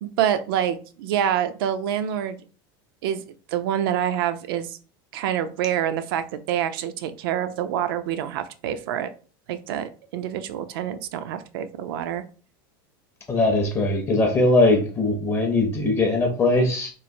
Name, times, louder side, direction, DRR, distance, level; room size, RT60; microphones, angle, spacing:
voice 1, 0.0-2.4 3.0-3.2 3.5-4.8 5.1-9.1 9.5-12.2, right 10 dB, 75° right, 11 dB, 0.4 m, -26 dB
voice 2, 13.3-16.9, left 2 dB, 20° left, 2 dB, 0.5 m, -20 dB
3.0 x 2.0 x 2.6 m, 0.38 s
supercardioid pair, 135°, 12 cm